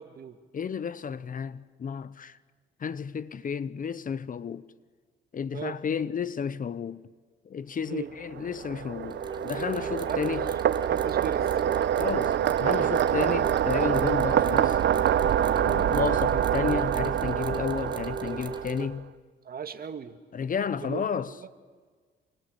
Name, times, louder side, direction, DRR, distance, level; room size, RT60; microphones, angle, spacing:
voice 1, 0.0-0.4 5.5-5.8 7.9-8.1 10.1-10.4 10.9-11.6 19.4-20.2 20.8-21.5, right 7 dB, 50° right, 2.1 m, -37 dB
voice 2, 0.5-2.4 2.8-4.6 5.3-7.0 7.4-10.5 12.0-14.8 15.6-19.1 20.3-21.4, left 6 dB, 45° left, 0.9 m, -32 dB
sound 1, 8.2-18.9, right 10 dB, 65° right, 0.9 m, -26 dB
sound 2, 9.0-18.9, right 3 dB, 20° right, 2.1 m, -39 dB
28.0 x 25.0 x 8.1 m
cardioid pair, 90°, 20 cm